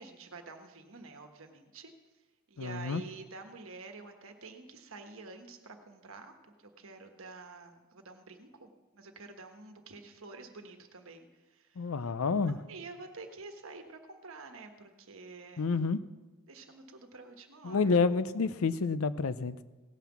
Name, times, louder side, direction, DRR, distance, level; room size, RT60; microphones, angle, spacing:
voice 1, 0.0-1.9 2.5-6.3 6.6-11.9 12.7-15.8 16.5-17.9, right 3 dB, 65° right, 5 dB, 1.3 m, -48 dB
voice 2, 2.6-3.0 11.8-12.6 15.6-16.0 17.6-19.6, left 4 dB, 70° left, 15 dB, 0.5 m, -29 dB
17.0 x 5.8 x 7.3 m, 1.2 s
head